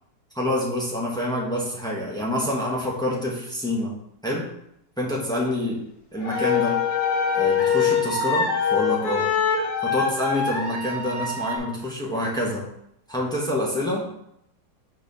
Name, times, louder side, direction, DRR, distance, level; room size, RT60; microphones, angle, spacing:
voice 1, 0.3-4.5 5.0-5.8 6.1-6.8 7.3-9.3 9.8-12.7 13.1-14.1, left 1 dB, 5° left, -3 dB, 0.8 m, -27 dB
sound 1, 6.2-11.6, left 6 dB, 60° left, 1.7 m, -24 dB
4.5 x 4.1 x 5.3 m, 0.75 s
omnidirectional pair, 2.0 m